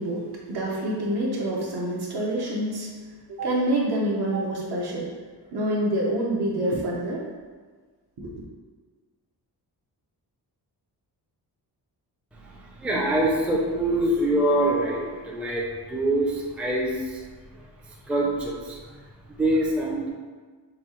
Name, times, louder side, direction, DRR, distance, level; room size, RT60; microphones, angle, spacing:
voice 1, 0.0-2.9 3.3-5.1 5.5-7.3 8.2-8.4, right 1 dB, 65° right, -3 dB, 1.0 m, -27 dB
voice 2, 12.3-17.2 17.8-18.8 19.3-20.1, right 1 dB, 5° right, -4 dB, 0.4 m, -25 dB
5.4 x 2.4 x 3.0 m, 1.5 s
wide cardioid pair, 165°, 41 cm